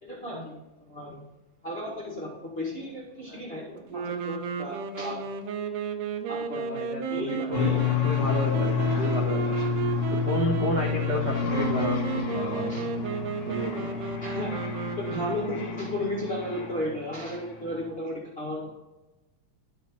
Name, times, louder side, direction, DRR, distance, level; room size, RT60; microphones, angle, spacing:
voice 1, 0.0-0.5 0.9-1.2 1.6-5.2 6.3-6.6 7.1-7.8 12.7-12.8 14.2-14.5 15.0-18.7, left 1 dB, 30° left, -5 dB, 1.2 m, -34 dB
sound 1, 3.9-15.8, right 5 dB, 80° right, 2.3 m, -33 dB
voice 2, 6.5-7.7 8.0-9.5 10.2-12.7 13.5-13.9 15.1-15.2, equal, 55° right, -2 dB, 1.2 m, -31 dB
sound 2, 7.5-17.1, left 7 dB, 45° left, 1.6 m, -29 dB
11.0 x 5.2 x 4.3 m, 1.1 s
omnidirectional pair, 3.7 m